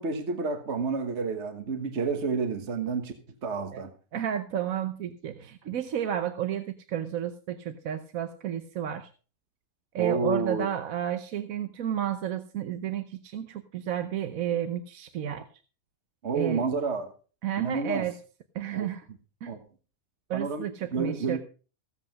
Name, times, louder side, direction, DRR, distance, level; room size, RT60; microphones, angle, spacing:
voice 1, 0.0-3.1 3.4-3.9 10.0-10.7 16.2-17.1 17.6-18.1 18.7-18.9 19.5-19.6 20.3-20.7 20.9-21.4, right 4 dB, 50° right, 7 dB, 1.6 m, -29 dB
voice 2, 4.1-9.1 9.9-15.4 16.3-16.7 17.4-18.1 18.5-19.1 19.4-19.5 20.3-21.4, right 10 dB, 70° right, 9 dB, 1.2 m, -31 dB
16.0 x 7.8 x 5.2 m, 0.37 s
omnidirectional pair, 1.5 m